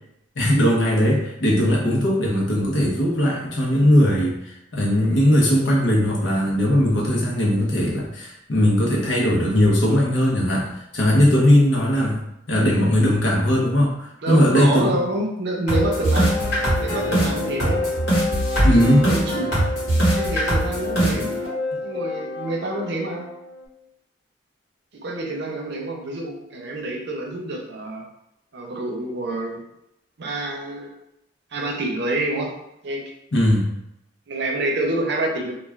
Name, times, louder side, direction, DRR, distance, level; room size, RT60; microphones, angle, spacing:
voice 1, 0.4-4.3 4.7-10.7 10.9-12.2 12.5-13.9 14.3-15.0 18.6-19.1 33.3-33.7, equal, 85° left, -3 dB, 0.8 m, -19 dB
voice 2, 14.2-16.3 16.8-17.9 18.7-19.5 20.1-21.3 21.8-23.3 24.9-28.0 28.5-29.6 30.2-30.9 31.5-32.5 32.8-33.0 34.3-35.5, right 2 dB, 65° right, 1 dB, 0.6 m, -27 dB
sound 1, 15.7-23.6, equal, 65° left, 1.4 m, -22 dB
2.4 x 2.4 x 3.2 m, 0.83 s
head